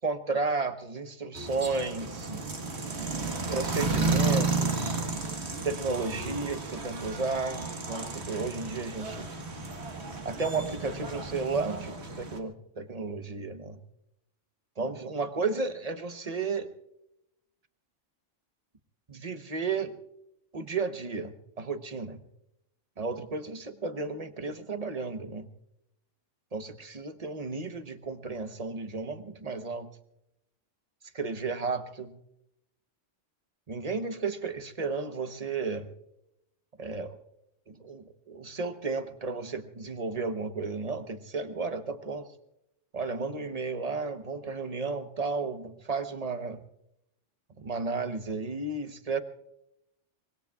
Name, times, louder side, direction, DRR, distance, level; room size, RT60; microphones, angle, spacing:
voice 1, 0.0-2.4 3.5-5.0 5.6-9.3 10.2-13.8 14.8-16.7 19.1-19.9 20.5-22.2 23.0-25.5 26.5-29.9 31.1-32.2 33.7-35.9 36.8-37.2 37.7-42.3 42.9-46.6 47.6-49.2, right 4 dB, 35° right, 9 dB, 1.0 m, -33 dB
sound 1, 1.3-12.4, right 3 dB, 60° right, 1.7 m, -32 dB
24.5 x 22.0 x 2.4 m, 0.82 s
omnidirectional pair, 1.3 m